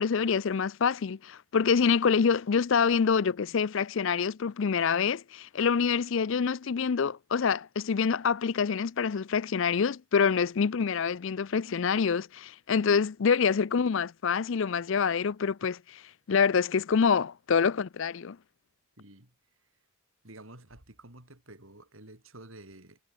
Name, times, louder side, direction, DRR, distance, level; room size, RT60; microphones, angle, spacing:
voice 1, 0.0-16.0 16.3-18.4, left 6 dB, 60° left, 0.4 m, -26 dB
voice 2, 19.0-19.3 20.2-23.0, right 1 dB, 65° right, 4.8 m, -50 dB
head